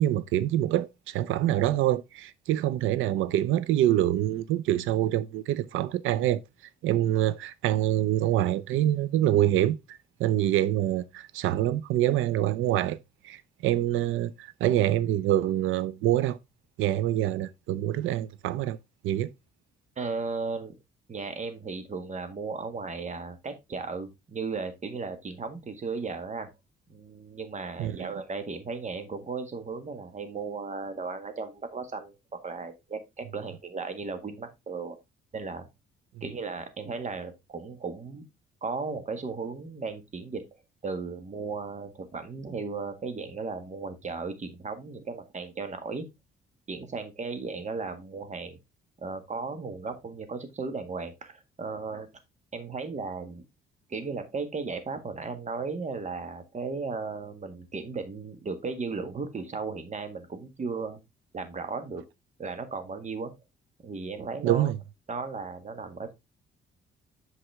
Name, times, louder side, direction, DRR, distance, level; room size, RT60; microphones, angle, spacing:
voice 1, 0.0-6.4 6.8-9.8 10.2-13.0 13.2-16.4 16.8-18.8 19.0-19.3 27.8-28.1 64.4-64.8, right 13 dB, 90° right, 0.6 m, -25 dB
voice 2, 20.0-20.7 21.1-26.5 26.9-35.0 35.3-35.7 36.2-38.2 38.6-40.4 40.8-46.1 46.7-48.6 49.0-52.1 52.5-53.4 53.9-61.0 61.3-62.0 62.4-63.3 63.8-64.7 65.1-66.1, right 4 dB, 35° right, 1.8 m, -35 dB
8.1 x 5.5 x 3.5 m
cardioid pair, 90°, 20 cm